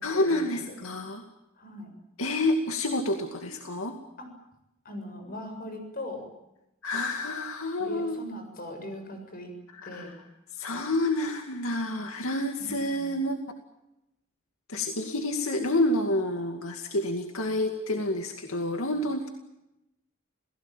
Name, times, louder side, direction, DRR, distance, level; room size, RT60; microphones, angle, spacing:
voice 1, 0.0-1.2 2.2-4.0 6.8-8.2 9.8-10.1 10.5-13.4 14.7-19.3, left 1 dB, 80° left, 4 dB, 2.4 m, -28 dB
voice 2, 1.6-1.9 4.2-4.3 4.8-6.3 7.8-9.5 9.9-10.1 12.8-13.1, left 1 dB, 45° left, 5 dB, 7.3 m, -39 dB
29.0 x 17.5 x 9.1 m, 0.90 s
head